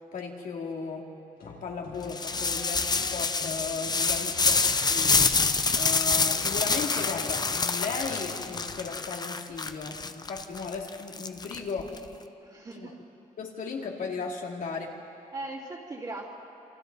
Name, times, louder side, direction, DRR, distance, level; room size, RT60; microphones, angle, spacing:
voice 1, 0.1-1.1 1.4-4.6 4.9-5.4 5.7-12.0 12.7-12.9 13.4-14.9, left 4 dB, 65° left, 0 dB, 2.8 m, -36 dB
sound 1, 1.4-8.9, left 4 dB, 80° left, 4.5 m, -46 dB
sound 2, 2.1-12.0, left 4 dB, 25° left, 0.8 m, -27 dB
voice 2, 4.2-4.9 12.4-13.0 15.3-16.3, right 2 dB, 30° right, -7 dB, 2.8 m, -40 dB
28.0 x 26.5 x 4.1 m, 2.8 s
cardioid pair, 115°, 15 cm